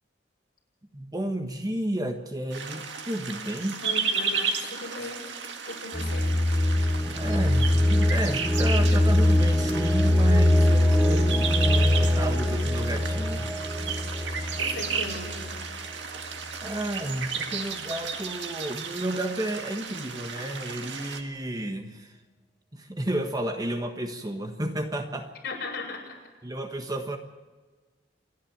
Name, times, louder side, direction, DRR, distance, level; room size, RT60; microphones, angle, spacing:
voice 1, 0.9-3.8 7.1-13.5 16.6-22.1 22.7-25.3 26.4-27.2, right 1 dB, 20° right, 6 dB, 1.4 m, -32 dB
sound 1, 2.5-21.2, right 6 dB, 70° right, 2.0 m, -34 dB
voice 2, 3.8-5.3 5.7-6.4 14.6-15.6 25.4-26.2, left 3 dB, 55° left, -1 dB, 7.3 m, -37 dB
sound 2, 5.9-15.7, left 1 dB, ahead, 1.2 m, -23 dB
27.5 x 11.0 x 8.8 m, 1.3 s
head